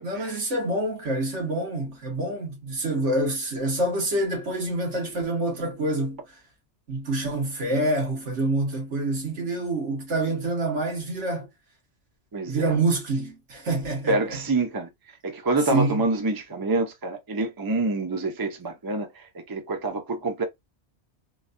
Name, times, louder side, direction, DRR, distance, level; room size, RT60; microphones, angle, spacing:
voice 1, 0.0-6.2 6.9-11.5 12.5-14.4 15.7-16.0, right 2 dB, 80° right, 1.8 m, -26 dB
voice 2, 12.3-12.8 14.1-14.9 15.2-20.4, right 2 dB, 25° right, 0.6 m, -27 dB
3.8 x 2.3 x 2.5 m
omnidirectional pair, 1.2 m